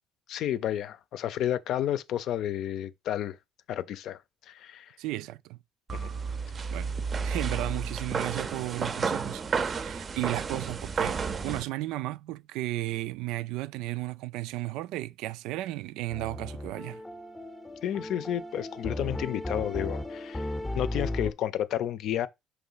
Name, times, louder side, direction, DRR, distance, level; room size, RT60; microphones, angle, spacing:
voice 1, 0.3-3.4 3.7-4.2 4.5-5.0 5.9-6.1 17.8-20.5 20.7-22.3, left 11 dB, 65° left, 0.6 m, -31 dB
voice 2, 5.0-5.6 6.7-6.9 7.2-17.0, right 17 dB, 90° right, 0.4 m, -34 dB
sound 1, 5.9-11.6, right 5 dB, 30° right, 0.6 m, -32 dB
sound 2, 16.1-21.3, left 1 dB, 10° left, 0.6 m, -36 dB
6.0 x 3.3 x 5.6 m
cardioid pair, 130°, 0 cm